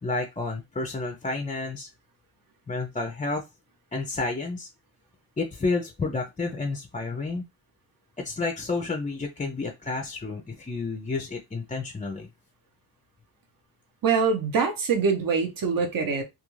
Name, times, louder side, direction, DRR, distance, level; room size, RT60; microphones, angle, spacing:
voice 1, 0.0-1.9 2.7-3.4 3.9-4.7 5.4-7.4 8.2-12.3, left 3 dB, 20° left, 0.3 m, -30 dB
voice 2, 14.0-16.2, right 5 dB, 50° right, 0.8 m, -24 dB
2.4 x 2.4 x 3.0 m
wide cardioid pair, 130°, 42 cm